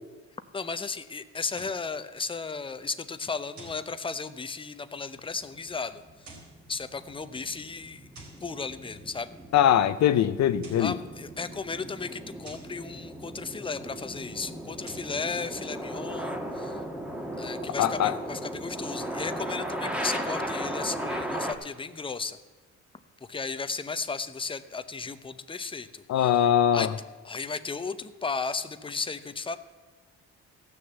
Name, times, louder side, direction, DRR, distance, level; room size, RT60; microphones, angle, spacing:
voice 1, 0.5-6.4 6.7-8.1 8.4-9.3 10.8-16.8 17.4-22.4 23.3-26.3 26.7-26.9 27.2-29.6, left 4 dB, 15° left, 11 dB, 0.7 m, -35 dB
sound 1, 1.5-1.9 3.6-3.9 6.1-6.6 8.1-8.5 10.4-11.0 12.4-12.8 14.7-15.2, right 2 dB, 70° right, 3.4 m, -49 dB
sound 2, 5.4-21.5, equal, 5° right, 1.5 m, -36 dB
voice 2, 9.5-11.0 17.8-18.1 26.1-26.9, left 10 dB, 65° left, 12 dB, 0.6 m, -22 dB
14.5 x 6.5 x 8.0 m, 1.3 s
cardioid pair, 90°, 30 cm